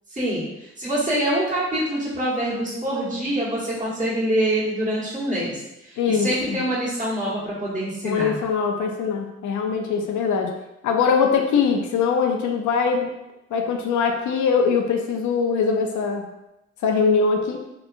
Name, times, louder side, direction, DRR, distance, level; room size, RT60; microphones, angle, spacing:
voice 1, 0.1-8.4, right 1 dB, 25° right, -8 dB, 1.2 m, -25 dB
voice 2, 6.0-6.6 8.0-10.5 10.8-13.1 13.5-16.3 16.8-17.6, left 5 dB, 75° left, 3 dB, 0.5 m, -22 dB
2.8 x 2.3 x 2.4 m, 0.91 s
cardioid pair, 85°, 30 cm